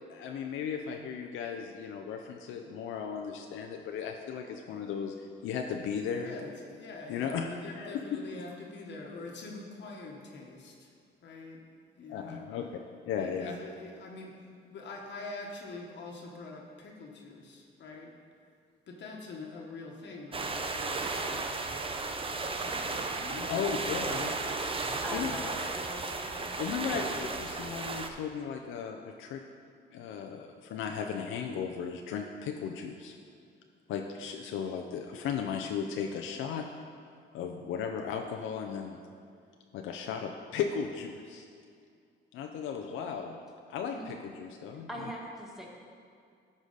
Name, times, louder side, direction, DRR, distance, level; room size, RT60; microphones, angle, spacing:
voice 1, 0.1-6.3 7.1-7.4 7.8-8.2 12.1-12.8 13.1-13.6 23.5-24.3 25.1-25.3 26.6-29.4 29.9-33.2 33.9-36.7 37.3-39.0 39.7-41.5 42.3-43.4 43.7-44.9, left 7 dB, 85° left, 3 dB, 0.5 m, -36 dB
voice 2, 6.2-10.9 11.2-11.6 12.0-12.5 13.1-14.4 14.7-18.1 18.9-23.7 24.1-25.5 26.9-27.3, left 3 dB, 65° left, -1 dB, 1.2 m, -45 dB
sound 1, 20.3-28.1, right 3 dB, 25° right, 0.6 m, -34 dB
voice 3, 25.0-26.5 43.9-44.0 44.9-45.7, equal, ahead, -3 dB, 1.9 m, -41 dB
12.5 x 4.9 x 3.9 m, 2.3 s
cardioid pair, 90°, 20 cm